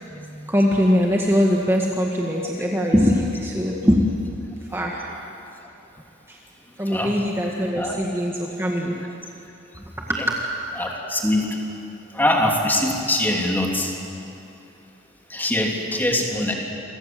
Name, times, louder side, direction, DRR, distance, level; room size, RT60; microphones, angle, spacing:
voice 1, 0.1-4.4 4.7-5.0 6.3-6.4 6.8-9.0 10.1-10.4, equal, 10° right, -2 dB, 1.9 m, -22 dB
voice 2, 10.8-11.5 12.1-13.9 15.3-16.5, left 1 dB, 10° left, 0 dB, 3.3 m, -22 dB
28.5 x 25.0 x 7.9 m, 2.9 s
head